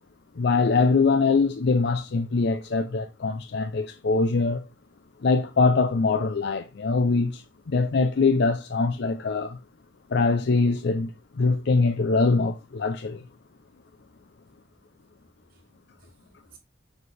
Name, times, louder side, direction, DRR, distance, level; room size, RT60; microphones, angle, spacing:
voice 1, 0.4-4.6 5.2-9.6 10.1-13.2, left 4 dB, 60° left, 0.5 m, -23 dB
voice 2, 14.5-14.8 15.5-16.6, right 4 dB, 50° right, 3.0 m, -59 dB
6.6 x 4.5 x 3.2 m
head